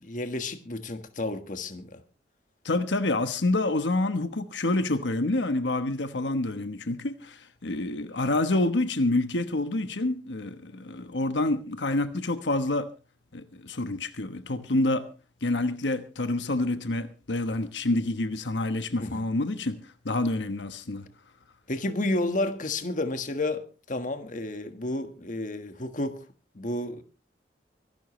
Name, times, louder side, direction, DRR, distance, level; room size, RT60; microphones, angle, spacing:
voice 1, 0.0-2.0 19.0-19.3 21.7-26.2 26.5-27.0, left 2 dB, 45° left, 1.6 m, -31 dB
voice 2, 2.6-12.9 13.3-15.0 15.4-19.8 20.0-21.1, left 2 dB, 85° left, 1.2 m, -27 dB
25.0 x 12.0 x 3.2 m
head